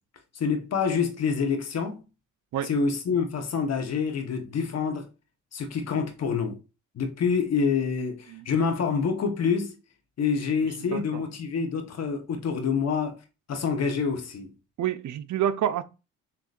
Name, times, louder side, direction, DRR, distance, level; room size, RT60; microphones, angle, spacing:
voice 1, 0.3-2.0 2.6-5.1 5.5-6.6 6.9-9.7 10.2-13.2 13.5-14.5, left 5 dB, 50° left, 1.2 m, -27 dB
voice 2, 10.9-11.2 14.8-15.8, right 10 dB, 60° right, 0.6 m, -28 dB
6.6 x 3.0 x 2.5 m
cardioid pair, 80°, 33 cm